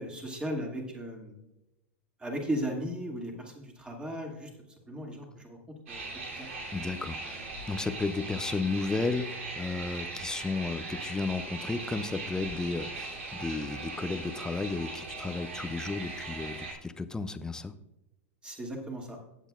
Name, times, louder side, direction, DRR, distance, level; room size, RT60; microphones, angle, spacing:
voice 1, 0.0-1.4 2.2-4.5 4.9-6.1 6.3-6.5 7.2-7.5 18.4-19.2, equal, 15° right, 1 dB, 2.4 m, -36 dB
sound 1, 5.9-16.7, right 3 dB, 75° right, 3.1 m, -40 dB
voice 2, 6.7-7.4 7.7-17.7, left 3 dB, 10° left, 11 dB, 0.6 m, -33 dB
16.5 x 8.1 x 2.5 m, 0.96 s
hypercardioid pair, 105°, 7 cm